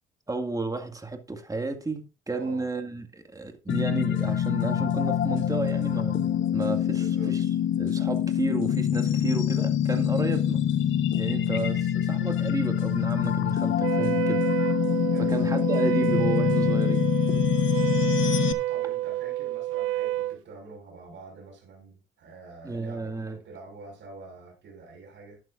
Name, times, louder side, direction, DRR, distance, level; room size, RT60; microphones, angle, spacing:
voice 1, 0.3-7.5 7.8-10.6 11.1-14.4 15.2-17.1 22.6-23.4, right 3 dB, 15° right, 2.2 m, -32 dB
voice 2, 2.3-2.7 7.0-7.4 10.3-10.6 11.3-11.6 15.1-15.4 18.7-25.4, right 3 dB, 70° right, 5.8 m, -46 dB
sound 1, 3.7-18.5, left 9 dB, 75° left, 1.2 m, -25 dB
Wind instrument woodwind instrument, 13.8-20.4, right 15 dB, 90° right, 0.5 m, -29 dB
12.5 x 11.5 x 2.6 m
cardioid pair, 90°, 20 cm